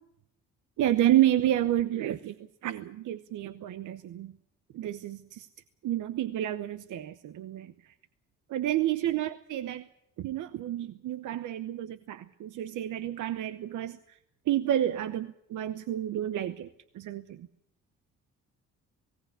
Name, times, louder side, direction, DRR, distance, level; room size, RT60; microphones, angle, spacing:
voice 1, 0.8-2.4 2.6-4.3 4.7-5.5 5.8-7.7 8.5-9.9 10.2-14.2 14.5-16.7 16.9-17.5, right 12 dB, 80° right, 12 dB, 0.9 m, -30 dB
19.0 x 18.0 x 8.1 m, 0.79 s
cardioid pair, 90°, 30 cm